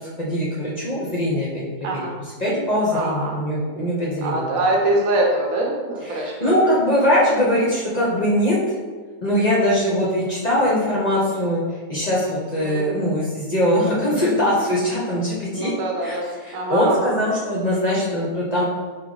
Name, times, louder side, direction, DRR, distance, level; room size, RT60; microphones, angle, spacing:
voice 1, 0.2-1.6 1.9-2.0 2.4-4.5 6.1-8.6 9.2-11.6 11.9-15.7 16.0-18.6, equal, 40° left, -6 dB, 0.6 m, -21 dB
voice 2, 2.9-3.4 4.2-6.6 12.6-12.8 15.5-17.1, right 2 dB, 70° right, -1 dB, 1.2 m, -24 dB
3.7 x 2.8 x 3.8 m, 1.5 s
omnidirectional pair, 1.5 m